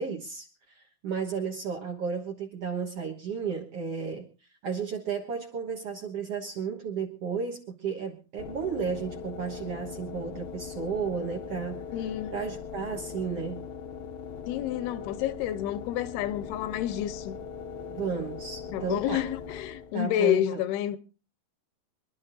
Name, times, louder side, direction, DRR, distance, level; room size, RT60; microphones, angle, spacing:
voice 1, 0.0-4.3 4.6-11.8 12.3-13.6 17.9-19.2 19.9-20.6, right 6 dB, 60° right, 1.6 m, -33 dB
sound 1, 8.4-20.1, left 6 dB, 75° left, 3.0 m, -40 dB
voice 2, 11.9-12.3 14.5-17.4 18.7-21.0, left 12 dB, 90° left, 2.8 m, -29 dB
25.5 x 11.5 x 2.6 m
omnidirectional pair, 4.5 m